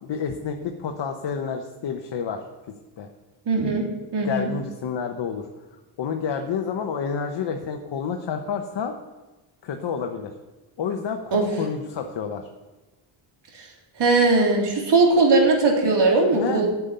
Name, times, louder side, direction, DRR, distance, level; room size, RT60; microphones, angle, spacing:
voice 1, 0.0-2.4 3.0-3.1 4.2-5.5 6.0-8.9 9.6-10.3 10.8-12.5 16.3-16.7, left 6 dB, 60° left, 4 dB, 1.1 m, -29 dB
voice 2, 3.4-3.8 4.1-4.5 11.3-11.4 13.5-13.7 14.0-16.7, right 3 dB, 60° right, 0 dB, 3.2 m, -19 dB
9.6 x 7.1 x 9.0 m, 1.1 s
cardioid pair, 90°, 48 cm